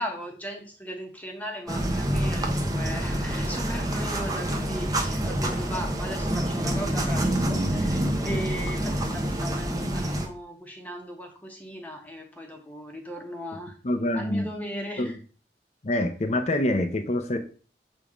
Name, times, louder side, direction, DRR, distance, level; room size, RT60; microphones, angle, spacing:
voice 1, 0.0-13.7 14.1-15.1, equal, 10° left, 1.2 m, -37 dB
sound 1, 1.7-10.3, right 1 dB, 20° right, 0.9 m, -27 dB
voice 2, 13.8-14.5 15.0-15.2 15.8-17.4, left 1 dB, 40° left, 0.6 m, -26 dB
7.1 x 3.7 x 5.0 m
head